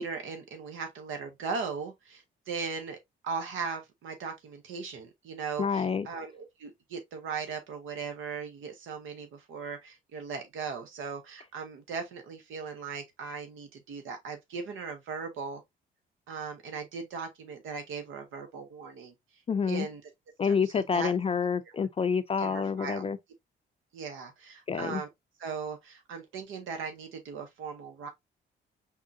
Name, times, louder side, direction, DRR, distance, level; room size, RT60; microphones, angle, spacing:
voice 1, 0.0-3.0 3.2-15.6 16.3-19.1 19.7-20.0 20.4-20.6 20.9-21.1 22.4-23.0 23.9-25.1 25.4-28.1, right 5 dB, 80° right, 0.9 m, -38 dB
voice 2, 5.6-6.1 19.5-19.9 20.4-23.2 24.7-25.0, left 6 dB, 30° left, 0.4 m, -28 dB
4.3 x 3.7 x 2.6 m
cardioid pair, 90°, 20 cm